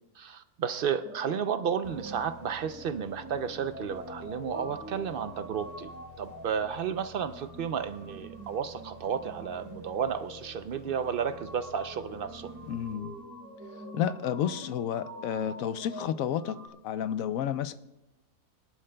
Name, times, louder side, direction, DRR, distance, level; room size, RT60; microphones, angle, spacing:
voice 1, 0.2-5.9 6.2-12.5, right 7 dB, 65° right, 10 dB, 0.5 m, -32 dB
sound 1, 1.0-16.7, right 1 dB, 10° right, 1.0 m, -46 dB
sound 2, 1.8-13.5, equal, 40° left, 1.9 m, -52 dB
voice 2, 12.7-13.2 13.9-16.6 16.8-17.7, left 9 dB, 75° left, 13 dB, 1.0 m, -31 dB
22.0 x 11.0 x 2.2 m, 0.93 s
omnidirectional pair, 1.5 m